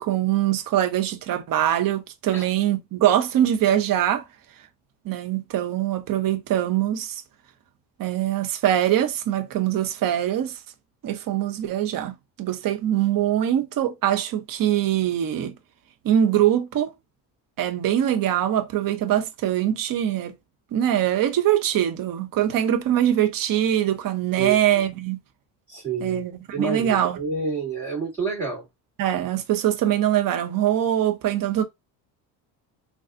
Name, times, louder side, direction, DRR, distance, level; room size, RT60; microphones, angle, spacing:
voice 1, 0.0-4.2 5.0-7.2 8.0-10.6 11.0-15.5 16.0-16.9 17.6-20.3 20.7-25.2 26.0-27.2 29.0-31.6, right 11 dB, 45° right, 0.8 m, -23 dB
voice 2, 25.7-26.2 26.5-28.6, right 5 dB, 5° left, 2.3 m, -28 dB
3.9 x 2.4 x 2.5 m
hypercardioid pair, 70°, 48 cm